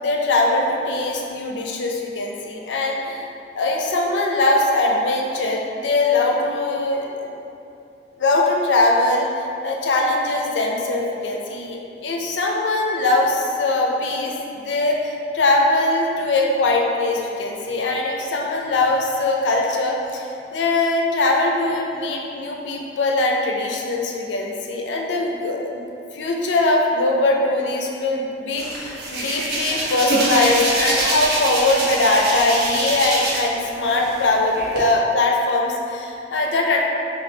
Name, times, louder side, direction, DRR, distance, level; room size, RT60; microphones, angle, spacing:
voice 1, 0.0-3.3 3.5-7.3 8.2-14.3 14.6-25.8 26.1-36.8, left 2 dB, 85° left, 0 dB, 0.5 m, -21 dB
Hands, 28.6-33.6 33.9-34.8, right 1 dB, 60° right, 0.7 m, -24 dB
3.2 x 2.3 x 4.3 m, 2.7 s
head